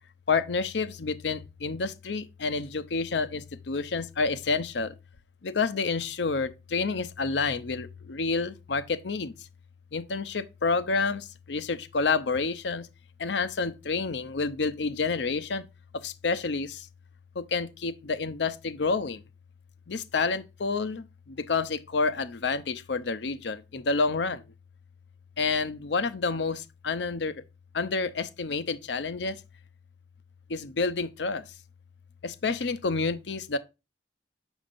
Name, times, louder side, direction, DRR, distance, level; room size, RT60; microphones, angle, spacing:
voice 1, 0.3-4.9 5.4-9.3 9.9-12.9 13.2-15.6 15.9-16.9 17.3-19.2 19.9-24.4 25.4-27.4 27.7-29.4 30.5-31.4 32.2-33.6, left 4 dB, 80° left, 0.7 m, -29 dB
7.1 x 6.2 x 2.5 m
head